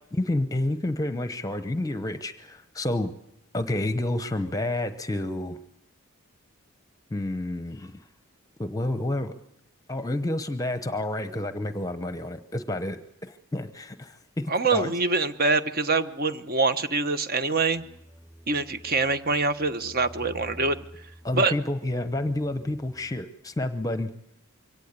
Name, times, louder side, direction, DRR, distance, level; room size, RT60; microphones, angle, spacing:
voice 1, 0.1-3.1 3.5-5.6 7.1-8.0 8.6-9.4 9.9-14.9 21.2-24.1, left 1 dB, 15° left, 10 dB, 0.8 m, -29 dB
voice 2, 14.5-17.8 18.5-20.8 21.3-21.5, right 3 dB, 45° right, 10 dB, 1.2 m, -25 dB
sound 1, 17.7-23.2, equal, 10° right, 6.4 m, -49 dB
23.5 x 17.5 x 8.2 m, 0.81 s
head